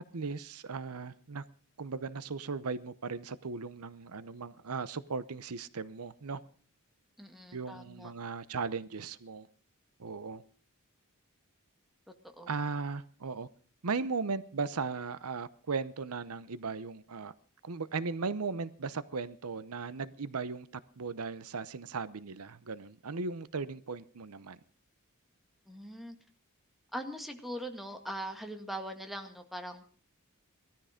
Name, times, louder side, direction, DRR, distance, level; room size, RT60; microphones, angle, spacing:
voice 1, 0.1-1.4 1.8-6.4 7.5-9.5 10.0-10.4 12.5-13.5 13.8-17.3 17.6-20.7 21.0-24.6, right 4 dB, 80° right, 0.8 m, -37 dB
voice 2, 7.2-8.1 12.4-12.5 25.7-26.2 26.9-29.8, right 1 dB, ahead, 1.9 m, -41 dB
18.5 x 13.5 x 5.1 m
head